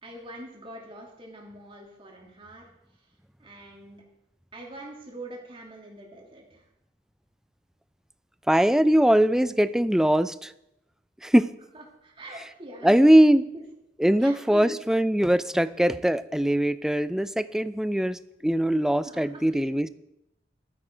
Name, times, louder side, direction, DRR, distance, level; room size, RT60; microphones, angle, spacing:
voice 1, 0.0-2.7 3.4-4.0 4.5-6.6 11.7-13.1 13.5-13.6 14.2-14.7 19.1-19.6, right 1 dB, 30° right, -1 dB, 2.7 m, -43 dB
voice 2, 8.5-10.5 11.2-11.5 12.8-13.4 14.0-19.9, right 1 dB, 5° right, 14 dB, 0.3 m, -21 dB
12.0 x 9.9 x 4.5 m, 0.83 s
head